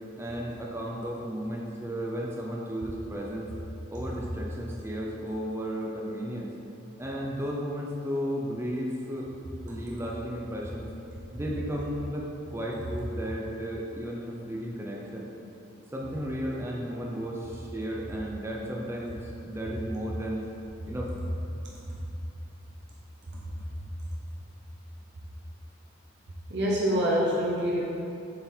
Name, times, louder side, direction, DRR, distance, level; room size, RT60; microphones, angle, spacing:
voice 1, 0.2-3.5 3.9-6.5 7.0-9.3 9.6-10.9 11.3-15.3 15.9-20.5 20.9-21.1, equal, 10° right, -2 dB, 0.5 m, -34 dB
voice 2, 26.5-27.8, equal, 55° right, -5 dB, 0.8 m, -26 dB
7.7 x 3.8 x 4.4 m, 2.8 s
head